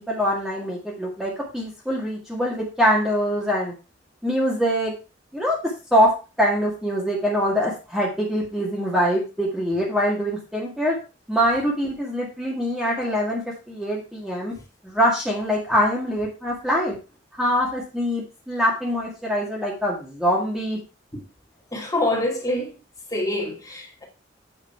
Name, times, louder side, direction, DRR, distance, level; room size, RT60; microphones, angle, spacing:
voice 1, 0.0-3.7 4.2-4.9 5.3-6.1 6.4-11.0 11.3-14.5 14.8-17.0 17.4-20.8, equal, ahead, 1.8 m, -23 dB
voice 2, 21.7-22.7 23.1-24.0, left 1 dB, 20° left, 2.5 m, -26 dB
8.1 x 5.8 x 4.4 m
head